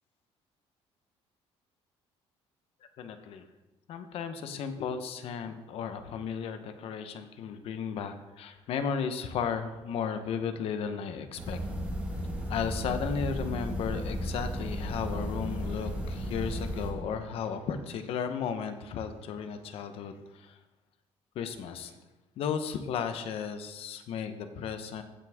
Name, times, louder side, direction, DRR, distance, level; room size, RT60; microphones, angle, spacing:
voice 1, 3.0-3.5 3.9-11.7 12.5-20.5 21.3-21.9 22.4-25.0, left 7 dB, 60° left, 8 dB, 0.9 m, -34 dB
sound 1, 11.4-16.9, equal, 15° right, 1.8 m, -34 dB
15.0 x 6.0 x 3.6 m, 1.1 s
cardioid pair, 155°, 11 cm